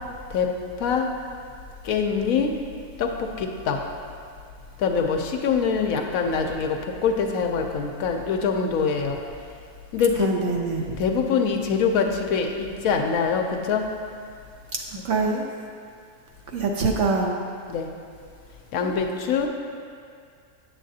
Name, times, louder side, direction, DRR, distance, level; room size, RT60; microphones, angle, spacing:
voice 1, 1.8-2.5 3.0-3.8 4.8-6.8 7.0-9.2 9.9-10.3 10.8-13.9 17.7-17.9 18.7-19.5, left 6 dB, 75° left, 3 dB, 1.0 m, -24 dB
voice 2, 10.2-10.8 15.0-15.5 16.5-17.4 18.8-19.0, right 4 dB, 65° right, 0 dB, 0.8 m, -24 dB
7.8 x 7.3 x 2.7 m, 2.2 s
omnidirectional pair, 1.6 m